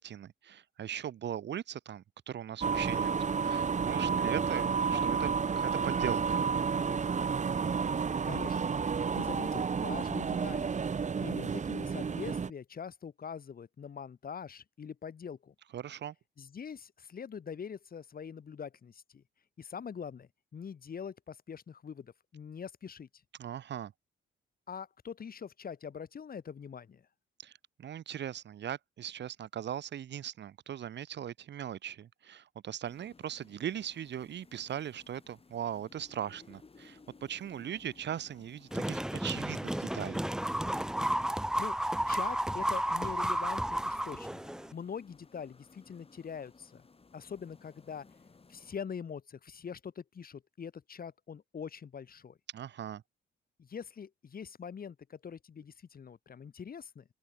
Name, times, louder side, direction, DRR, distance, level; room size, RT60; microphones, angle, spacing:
voice 1, 0.0-6.4 15.7-16.1 23.4-23.9 27.4-27.5 27.8-40.2 52.5-53.0, right 10 dB, 60° right, 2.0 m, -39 dB
sound 1, 2.6-12.5, right 6 dB, 35° right, 2.0 m, -31 dB
voice 2, 8.2-8.6 9.1-10.7 11.2-15.5 16.4-19.2 19.6-23.1 24.7-27.0 41.6-41.8 42.1-44.4 44.7-46.8 47.1-48.1 48.5-52.4 53.6-57.1, left 7 dB, 50° left, 8.0 m, -43 dB
sound 2, 32.8-48.7, left 4 dB, 30° left, 7.3 m, -60 dB
sound 3, 38.7-44.7, right 1 dB, 5° right, 0.6 m, -32 dB
open air
cardioid pair, 90°, 20 cm